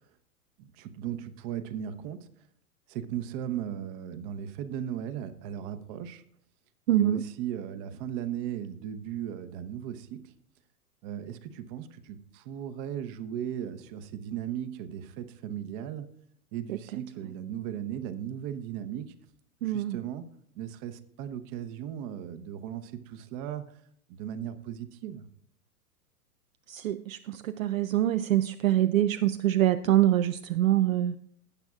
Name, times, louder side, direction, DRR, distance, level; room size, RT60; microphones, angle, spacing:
voice 1, 0.6-2.3 2.9-6.2 6.9-10.3 11.0-16.1 16.5-19.1 19.6-20.3 20.5-23.8 24.1-25.3, right 10 dB, 35° right, 0.9 m, -37 dB
voice 2, 6.9-7.2 16.7-16.8 19.6-20.0 26.7-31.1, right 13 dB, 65° right, 0.5 m, -25 dB
18.5 x 8.3 x 2.4 m
figure-of-eight pair, 105°, 45 cm